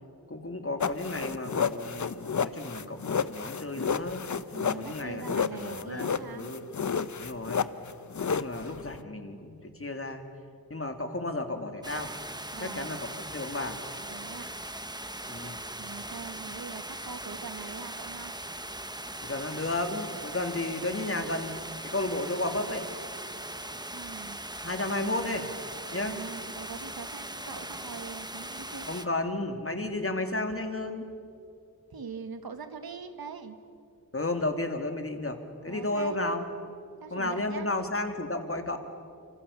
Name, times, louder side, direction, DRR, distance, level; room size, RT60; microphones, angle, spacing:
voice 1, 0.3-4.3 4.8-5.2 5.5-6.6 7.2-7.6 8.1-10.2 10.7-12.1 12.6-13.8 15.3-15.6 19.2-21.6 21.8-22.9 24.6-25.5 25.9-26.2 27.5-27.6 28.9-31.1 34.1-36.4 37.1-38.8, left 2 dB, 40° left, 6 dB, 2.6 m, -33 dB
sound 1, 0.8-9.0, left 6 dB, 55° left, 0.8 m, -31 dB
voice 2, 4.5-6.5 12.5-12.9 14.0-14.5 15.8-18.3 23.9-24.4 26.0-29.0 31.9-33.6 35.7-36.2 37.0-37.7, right 5 dB, 80° right, 8 dB, 1.8 m, -42 dB
sound 2, 11.8-29.1, right 1 dB, 10° right, 1.3 m, -40 dB
27.0 x 26.0 x 7.1 m, 2.4 s
cardioid pair, 55°, 36 cm